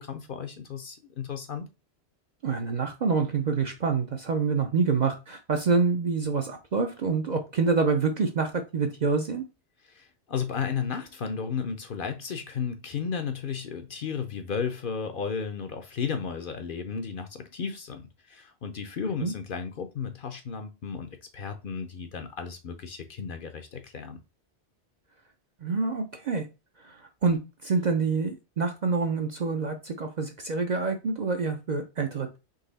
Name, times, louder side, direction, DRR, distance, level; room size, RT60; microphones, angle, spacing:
voice 1, 0.0-1.7 9.8-24.2, left 6 dB, 55° left, 0.7 m, -34 dB
voice 2, 2.4-9.4 19.2-19.3 25.6-26.5 26.8-32.4, right 4 dB, 50° right, 0.5 m, -27 dB
4.0 x 3.0 x 3.9 m
omnidirectional pair, 1.2 m